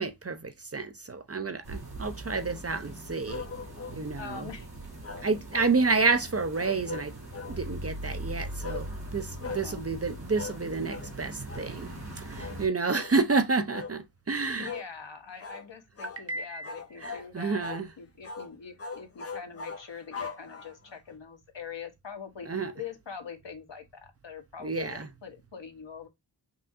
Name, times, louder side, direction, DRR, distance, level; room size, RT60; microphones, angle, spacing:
voice 1, 0.0-3.5 3.9-4.5 5.2-7.2 7.5-14.7 16.3-16.7 17.0-17.9 22.5-22.7 24.6-25.1, right 4 dB, 35° right, 0.5 m, -30 dB
sound 1, 1.6-12.7, right 1 dB, 75° right, 3.0 m, -41 dB
sound 2, 3.3-4.0 5.0-6.1 6.5-7.6 8.6-8.9 9.4-9.7 10.4-10.6 10.9-11.1 11.5-11.7 12.4-12.6 12.9-13.2 13.7-14.0 14.6-14.9 15.4-15.7 16.0-16.2 16.6-17.3 17.6-17.9 18.2-18.5 18.8-20.9, left 4 dB, 35° left, 0.5 m, -40 dB
voice 2, 4.2-4.7 9.4-9.8 14.6-17.7 18.0-26.1, left 6 dB, 70° left, 1.1 m, -43 dB
5.4 x 2.4 x 2.6 m
wide cardioid pair, 70°, 44 cm